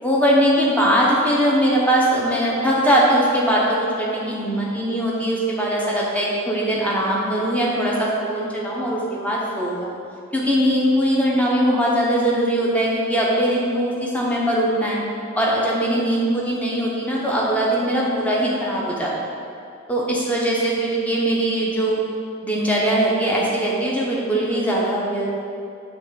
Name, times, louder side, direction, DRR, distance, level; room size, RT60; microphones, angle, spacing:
voice 1, 0.0-10.0 10.3-15.0 15.3-19.1 19.9-22.0 22.4-25.3, right 1 dB, 5° left, -4 dB, 0.9 m, -21 dB
7.1 x 3.3 x 5.6 m, 2.5 s
head